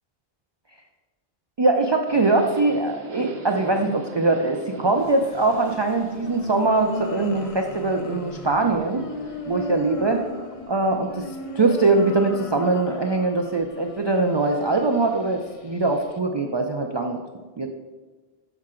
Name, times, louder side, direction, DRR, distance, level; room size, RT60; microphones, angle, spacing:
voice 1, 1.6-9.0 9.5-10.2 10.7-11.3 11.6-17.2 17.6-17.7, right 3 dB, 45° right, 3 dB, 0.3 m, -22 dB
Subway metro underground, 2.1-9.6, right 4 dB, 75° right, 1.0 m, -42 dB
sound 1, 5.0-16.2, left 1 dB, 45° left, 0.5 m, -37 dB
6.5 x 5.9 x 3.7 m, 1.3 s
omnidirectional pair, 1.0 m